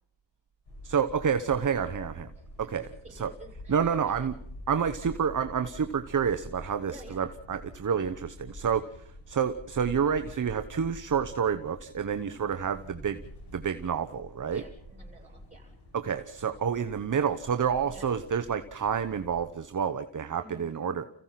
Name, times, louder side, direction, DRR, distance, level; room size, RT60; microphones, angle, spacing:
sound 1, 0.7-19.5, left 1 dB, 55° left, 6.7 m, -47 dB
voice 1, 0.8-2.3 2.6-3.3 3.7-4.4 4.7-8.9 9.3-14.7 15.9-21.0, right 7 dB, 40° right, 10 dB, 1.0 m, -29 dB
voice 2, 2.3-4.3 6.9-7.2 12.3-12.6 14.5-15.7 17.8-18.2 20.4-21.0, right 1 dB, 15° right, 1 dB, 7.8 m, -51 dB
30.0 x 16.0 x 5.9 m, 0.70 s
wide cardioid pair, 100°, 47 cm